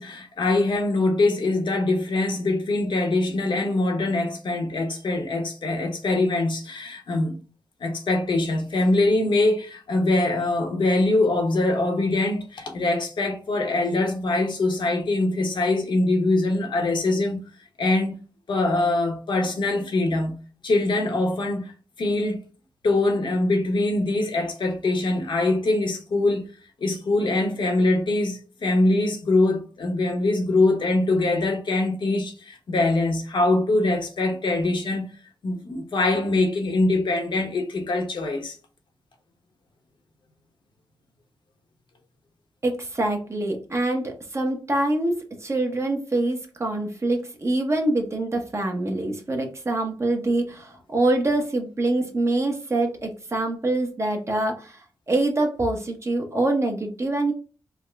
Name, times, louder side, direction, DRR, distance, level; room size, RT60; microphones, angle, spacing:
voice 1, 0.0-7.4 7.8-17.4 17.8-18.1 18.5-20.4 20.6-21.6 22.0-22.4 22.8-26.4 26.8-35.1 35.4-38.6, left 2 dB, 70° left, 0.9 m, -23 dB
voice 2, 42.6-54.8 55.1-57.3, right 2 dB, 35° right, 0.9 m, -25 dB
3.5 x 2.1 x 3.4 m
wide cardioid pair, 85°, 8 cm